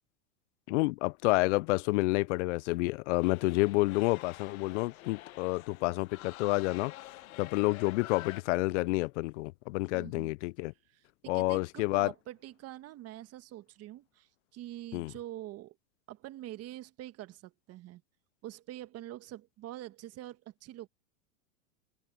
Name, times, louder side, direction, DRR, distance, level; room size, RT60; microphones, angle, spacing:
voice 1, 0.7-6.9 7.4-10.7 11.3-12.1 14.9-15.1, left 23 dB, 55° left, 0.5 m, -29 dB
sound 1, 3.2-8.4, left 16 dB, 75° left, 1.5 m, -48 dB
voice 2, 9.9-10.3 10.9-15.8 16.1-18.0 18.4-20.9, right 14 dB, 35° right, 1.6 m, -45 dB
hypercardioid pair, 120°, 42 cm